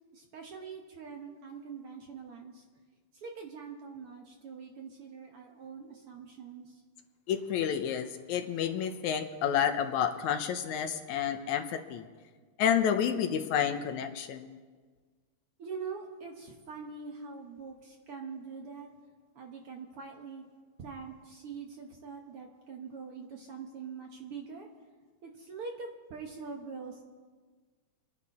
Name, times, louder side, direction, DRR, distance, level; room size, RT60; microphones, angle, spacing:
voice 1, 0.1-2.6 3.1-6.8 15.6-18.9 19.4-20.5 20.8-24.7 25.2-27.0, right 5 dB, 55° right, 1 dB, 1.7 m, -43 dB
voice 2, 7.3-12.1 12.6-14.6, left 8 dB, 75° left, 7 dB, 2.1 m, -30 dB
27.0 x 11.0 x 4.2 m, 1.5 s
omnidirectional pair, 3.6 m